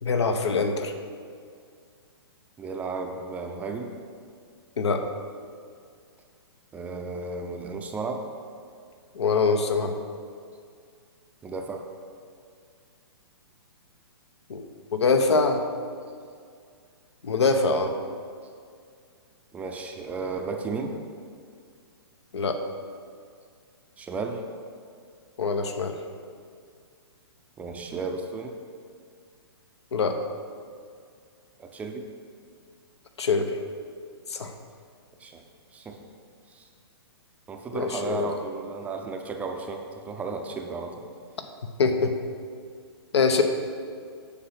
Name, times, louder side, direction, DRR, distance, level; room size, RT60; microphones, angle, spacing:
voice 1, 0.0-0.9 4.8-5.0 9.1-10.0 14.5-14.7 14.9-15.6 17.2-17.9 22.3-22.6 25.4-26.0 29.9-30.2 33.2-33.6 34.3-34.5 37.7-38.3 41.8-42.1 43.1-43.4, left 4 dB, 85° left, 6 dB, 1.1 m, -23 dB
voice 2, 2.6-3.9 6.7-8.3 11.4-11.8 19.5-21.0 24.0-24.4 27.6-28.6 31.6-32.1 35.2-35.4 35.7-36.0 36.5-36.7 37.5-41.1, right 4 dB, 10° right, 4 dB, 0.5 m, -34 dB
8.6 x 5.9 x 5.8 m, 2.2 s
hypercardioid pair, 150°, 14 cm